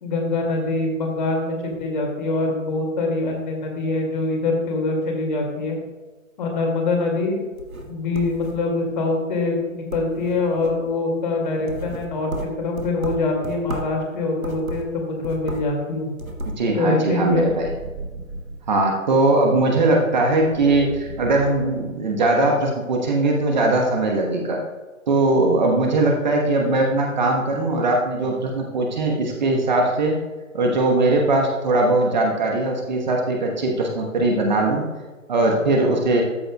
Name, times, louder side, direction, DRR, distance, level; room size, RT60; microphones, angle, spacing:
voice 1, 0.0-5.8 6.4-7.4 7.9-16.1 16.7-17.5, left 3 dB, 35° left, 1 dB, 2.2 m, -24 dB
sound 1, 7.4-8.9 9.3-9.6 9.9-10.9 11.4-14.0 14.4-15.8 16.1-16.6, equal, 90° right, 1.7 m, -33 dB
voice 2, 16.6-17.7 18.7-24.6 25.1-30.2 30.5-34.8 35.3-36.2, right 2 dB, 35° right, 1 dB, 1.2 m, -20 dB
sound 2, 17.1-18.7 20.2-22.0, right 2 dB, 10° right, 2.1 m, -37 dB
13.5 x 7.7 x 2.3 m, 1.3 s
figure-of-eight pair, 135°, 41 cm